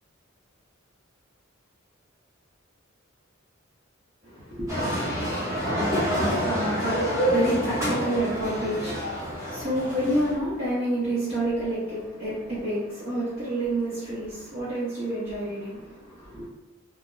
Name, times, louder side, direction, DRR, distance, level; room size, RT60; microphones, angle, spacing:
voice 1, 4.2-4.9 6.1-16.5, right 1 dB, 50° right, -10 dB, 0.8 m, -29 dB
sound 1, 4.7-10.3, equal, 15° right, 0.9 m, -27 dB
2.3 x 2.1 x 3.0 m, 1.0 s
head